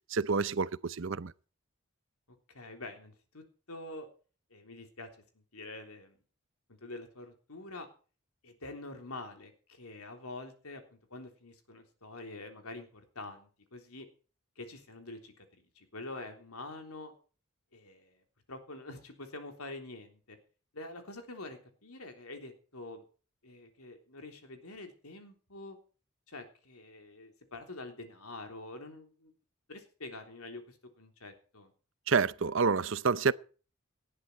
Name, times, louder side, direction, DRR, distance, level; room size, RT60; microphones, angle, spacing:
voice 1, 0.1-1.3 32.1-33.3, right 5 dB, 60° right, 0.6 m, -28 dB
voice 2, 2.5-4.1 4.5-5.1 5.4-6.2 6.7-7.9 8.4-14.1 14.6-15.5 15.8-17.1 17.7-20.4 20.7-23.0 23.4-25.8 26.3-29.3 29.7-31.7, left 2 dB, 85° left, 3.5 m, -46 dB
18.5 x 11.0 x 4.5 m
head